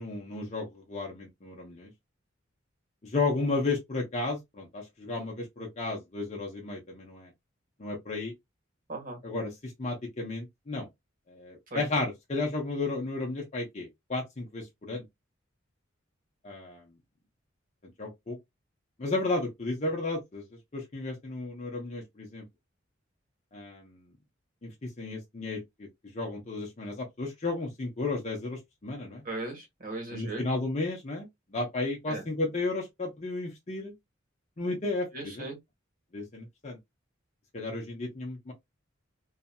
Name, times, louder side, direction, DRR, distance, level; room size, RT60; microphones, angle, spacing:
voice 1, 0.0-1.9 3.0-7.3 7.8-8.3 9.2-10.9 11.3-15.0 16.4-16.9 18.0-18.4 19.0-20.4 20.7-22.4 23.5-24.0 24.6-25.9 26.1-29.2 30.1-33.9 34.6-35.5 36.1-36.8 37.5-38.5, left 3 dB, 35° left, 0.7 m, -33 dB
voice 2, 8.9-9.2 11.7-11.9 29.2-30.5 32.1-32.2 35.1-35.6, right 2 dB, 45° right, 1.5 m, -37 dB
2.8 x 2.7 x 2.2 m
head